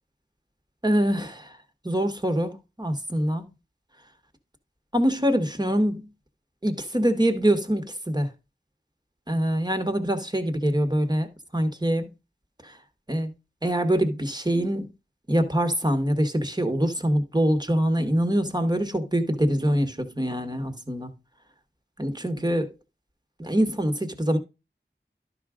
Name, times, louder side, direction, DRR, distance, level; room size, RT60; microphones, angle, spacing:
voice 1, 0.8-1.6 1.8-3.5 4.9-6.1 6.6-8.3 9.3-12.1 12.6-12.8 13.1-13.3 13.6-14.9 15.3-21.1 22.0-22.7 23.4-24.4, equal, 20° right, 1.3 m, -24 dB
12.0 x 4.9 x 3.7 m
wide cardioid pair, 45°, 20 cm